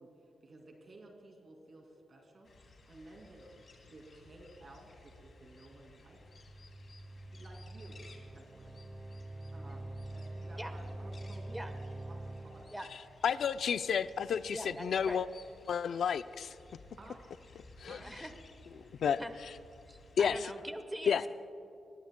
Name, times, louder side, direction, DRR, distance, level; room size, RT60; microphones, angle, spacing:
voice 1, 0.0-3.5 3.8-6.2 7.3-8.1 8.3-8.7 9.5-9.8 10.1-11.6 12.0-13.0 17.0-17.2 17.9-18.2, right 2 dB, 45° right, 1 dB, 2.4 m, -55 dB
sound 1, 2.4-20.5, left 2 dB, 50° left, 2.8 m, -58 dB
sound 2, 6.1-12.9, right 1 dB, 25° right, 0.8 m, -45 dB
voice 2, 13.2-15.3 15.7-16.5 17.8-18.0 18.8-19.2 20.2-20.4 21.1-21.2, left 7 dB, 70° left, 13 dB, 0.4 m, -31 dB
voice 3, 14.5-15.2 18.0-18.3 19.2-19.3 19.9-21.3, right 1 dB, 5° right, 7 dB, 1.1 m, -42 dB
24.0 x 21.5 x 2.2 m, 2.9 s
wide cardioid pair, 125°, 0 cm